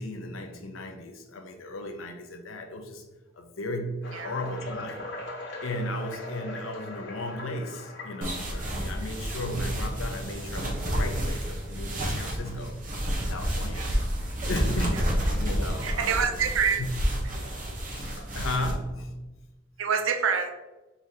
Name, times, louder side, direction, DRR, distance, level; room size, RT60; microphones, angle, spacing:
voice 1, 0.0-3.1 3.3-5.1 5.6-12.8 13.1-13.9 14.5-16.3 17.4-19.1, left 1 dB, 85° left, 5 dB, 0.7 m, -35 dB
sound 1, 4.0-10.9 11.5-11.7 12.3-12.4 12.9-13.0 14.4-14.5 17.3-17.4 18.2-18.9, left 1 dB, 60° left, 1.0 m, -42 dB
sound 2, 8.2-18.7, equal, 40° right, 0.9 m, -30 dB
voice 2, 15.8-16.8 19.8-20.5, right 6 dB, 80° right, 6 dB, 0.5 m, -26 dB
4.7 x 4.0 x 2.7 m, 1.1 s
head